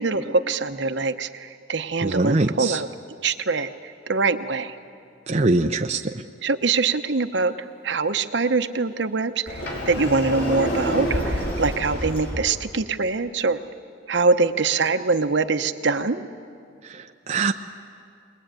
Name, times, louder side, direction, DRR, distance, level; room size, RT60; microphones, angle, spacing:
voice 1, 0.0-2.9 3.2-4.8 6.4-7.5 7.8-13.6 14.1-16.2, right 4 dB, 65° right, 9 dB, 0.9 m, -23 dB
voice 2, 2.0-2.8 5.3-6.0 16.9-17.5, right 2 dB, 35° right, 4 dB, 0.5 m, -22 dB
Sliding door, 9.5-12.5, equal, 60° left, 5.8 m, -27 dB
21.5 x 21.0 x 9.0 m, 2.4 s
head